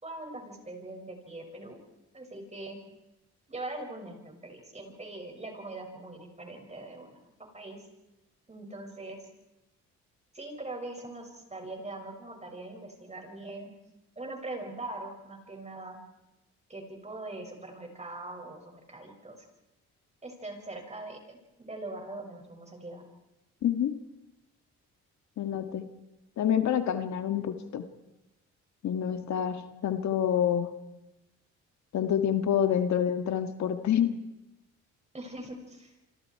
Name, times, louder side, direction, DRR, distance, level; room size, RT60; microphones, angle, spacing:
voice 1, 0.0-1.8 2.1-2.8 3.5-7.2 7.5-7.8 8.5-9.2 10.3-13.7 14.2-16.0 16.7-19.5 20.2-23.0 35.1-35.9, right 2 dB, 20° right, 3 dB, 6.6 m, -42 dB
voice 2, 23.6-23.9 25.4-25.9 26.4-27.9 28.8-30.7 31.9-34.2, left 9 dB, 65° left, 9 dB, 1.7 m, -27 dB
28.5 x 25.5 x 4.7 m, 0.96 s
cardioid pair, 90°, 30 cm